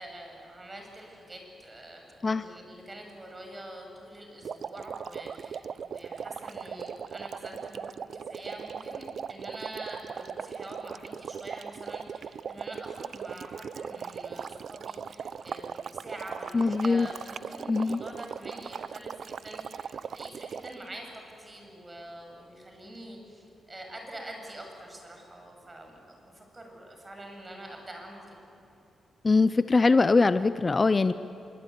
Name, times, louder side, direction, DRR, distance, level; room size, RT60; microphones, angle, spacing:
voice 1, 0.0-28.4, right 1 dB, 25° right, 2 dB, 7.2 m, -45 dB
sound 1, 4.4-20.9, right 7 dB, 65° right, 0.6 m, -39 dB
voice 2, 16.5-17.1 17.7-18.0 29.2-31.1, left 3 dB, 35° left, 13 dB, 0.6 m, -22 dB
25.5 x 23.5 x 9.5 m, 2.9 s
cardioid pair, 80°, 0 cm